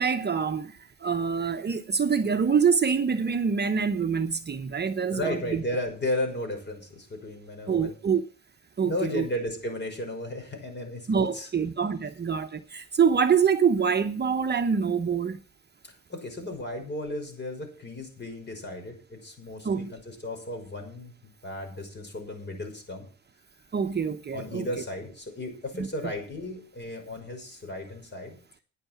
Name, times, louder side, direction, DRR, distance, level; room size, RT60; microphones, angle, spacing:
voice 1, 0.0-5.6 7.7-8.2 8.8-9.3 11.1-15.4 19.6-19.9 23.7-24.7 25.8-25.9, right 6 dB, 35° right, 1.0 m, -25 dB
voice 2, 5.1-7.9 8.8-11.5 12.0-12.2 16.1-23.1 24.3-28.4, left 1 dB, 35° left, 5.8 m, -34 dB
10.0 x 8.8 x 7.3 m
cardioid pair, 90°, 30 cm